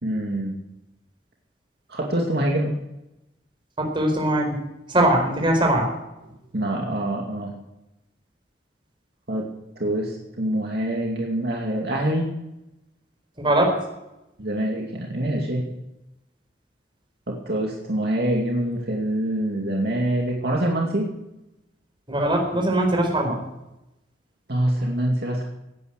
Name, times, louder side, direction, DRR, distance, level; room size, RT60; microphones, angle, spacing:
voice 1, 0.0-0.6 1.9-2.7 6.5-7.5 9.3-9.5 9.8-12.3 14.4-15.7 17.3-21.1 24.5-25.4, right 1 dB, 65° right, -1 dB, 2.5 m, -25 dB
voice 2, 3.8-4.6 4.9-5.9 13.4-13.8 22.1-23.4, right 1 dB, 30° right, 2 dB, 4.4 m, -21 dB
17.0 x 9.7 x 6.5 m, 0.92 s
head